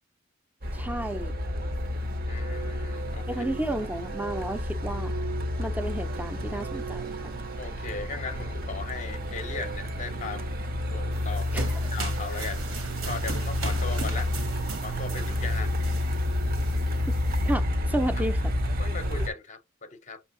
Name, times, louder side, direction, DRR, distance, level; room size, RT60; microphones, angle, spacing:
Truck, 0.6-19.3, left 1 dB, 45° right, 0.6 m, -30 dB
voice 1, 0.7-1.3 3.3-5.1 5.6-7.2 11.5-11.8 17.1-17.2 17.5-18.5, right 1 dB, 10° right, 0.5 m, -32 dB
voice 2, 2.3-3.2 7.6-10.5 10.9-12.6 13.1-14.3 14.8-15.7 18.8-20.2, left 4 dB, 35° left, 0.6 m, -38 dB
sound 1, 11.1-17.5, right 4 dB, 70° right, 1.2 m, -39 dB
5.8 x 2.8 x 2.6 m
head